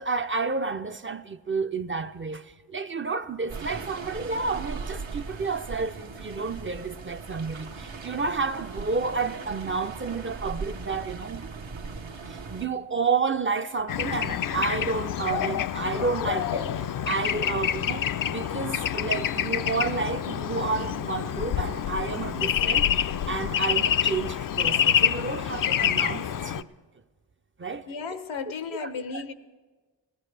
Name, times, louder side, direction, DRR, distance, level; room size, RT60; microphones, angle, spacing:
voice 1, 0.0-11.5 12.3-26.7 27.6-27.9 28.8-28.9 29.1-29.2, right 4 dB, 25° right, 0.5 m, -30 dB
sound 1, 3.5-12.7, right 4 dB, 75° right, 1.1 m, -38 dB
Bird / Traffic noise roadway noise, 13.9-26.6, left 9 dB, 45° left, 0.4 m, -27 dB
voice 2, 27.9-29.3, left 5 dB, 80° left, 0.8 m, -34 dB
19.5 x 15.0 x 3.3 m
cardioid pair, 40°, 46 cm